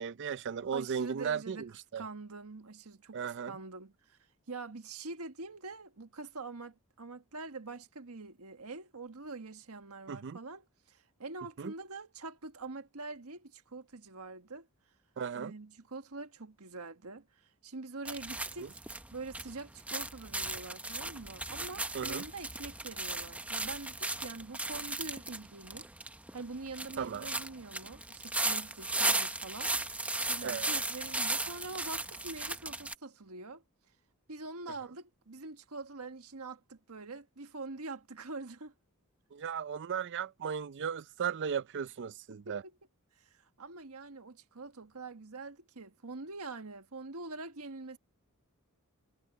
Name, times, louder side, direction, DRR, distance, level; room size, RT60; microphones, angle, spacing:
voice 1, 0.0-2.0 3.1-3.5 10.1-10.4 11.6-11.7 15.2-15.5 21.9-22.2 27.0-27.3 30.4-30.7 39.3-42.6, right 7 dB, 55° right, 0.5 m, -36 dB
voice 2, 0.7-4.2 4.5-14.7 15.3-18.8 19.1-30.0 30.3-33.6 34.3-38.7 42.3-42.8 43.2-48.0, right 3 dB, 75° right, 1.5 m, -45 dB
sound 1, 18.0-32.9, right 2 dB, 5° right, 0.8 m, -36 dB
head